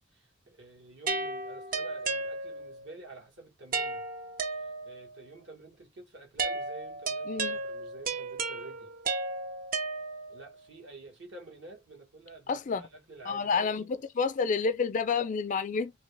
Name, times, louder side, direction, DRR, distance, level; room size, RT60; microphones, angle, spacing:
voice 1, 0.1-4.0 4.6-8.9 10.3-13.9, right 2 dB, 60° right, 1.4 m, -50 dB
sound 1, 1.1-2.8 3.7-5.1 6.4-10.5, right 3 dB, 45° right, 0.6 m, -34 dB
voice 2, 7.3-7.6 12.5-12.8 13.3-15.9, left 5 dB, 40° left, 0.4 m, -29 dB
2.9 x 2.8 x 3.2 m
head